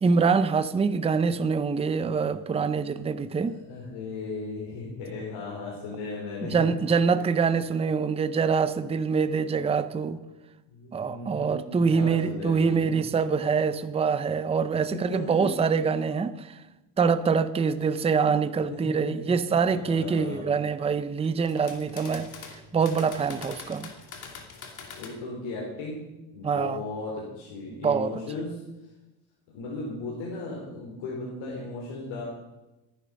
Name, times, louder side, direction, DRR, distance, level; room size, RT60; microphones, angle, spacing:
voice 1, 0.0-3.5 6.4-10.2 10.9-16.6 17.0-22.3 22.7-23.9 26.4-26.8 27.7-28.2, right 5 dB, 15° right, 0.6 m, -25 dB
voice 2, 3.4-6.7 7.1-7.3 8.8-8.9 10.7-13.0 14.9-15.5 18.7-20.5 25.0-26.0 26.3-28.5 29.5-32.2, left 3 dB, 80° left, 4.2 m, -36 dB
sound 1, 21.2-25.1, left 5 dB, 40° left, 2.6 m, -43 dB
14.0 x 10.0 x 6.5 m
cardioid pair, 135°, 45 cm